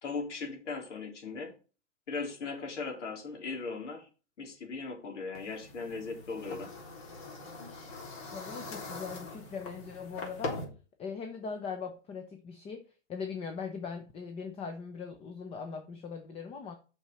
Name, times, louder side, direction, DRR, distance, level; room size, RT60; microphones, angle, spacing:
voice 1, 0.0-1.5 2.1-4.1 4.4-6.7, left 4 dB, 85° left, 2 dB, 4.0 m, -38 dB
sound 1, 5.3-10.6, left 3 dB, 40° left, 3.6 m, -42 dB
voice 2, 8.3-10.7 11.0-12.8 13.1-16.8, left 5 dB, 15° left, 7 dB, 0.8 m, -40 dB
7.2 x 6.2 x 5.5 m, 0.34 s
hypercardioid pair, 145°, 35 cm